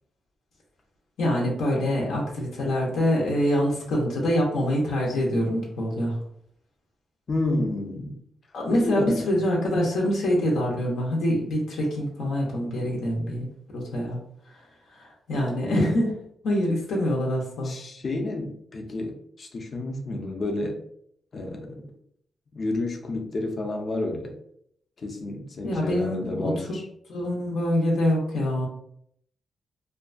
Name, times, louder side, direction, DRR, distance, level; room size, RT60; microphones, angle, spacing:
voice 1, 1.2-6.2 8.5-13.5 13.7-14.2 15.0-16.1 16.4-17.7 25.6-26.7 27.1-28.7, left 1 dB, 90° left, -2 dB, 0.6 m, -25 dB
voice 2, 7.3-8.2 8.7-9.4 17.6-20.8 21.3-21.8 22.5-24.3 25.0-26.9, left 2 dB, 40° left, 2 dB, 0.5 m, -30 dB
2.5 x 2.2 x 2.4 m, 0.69 s
wide cardioid pair, 135°, 0 cm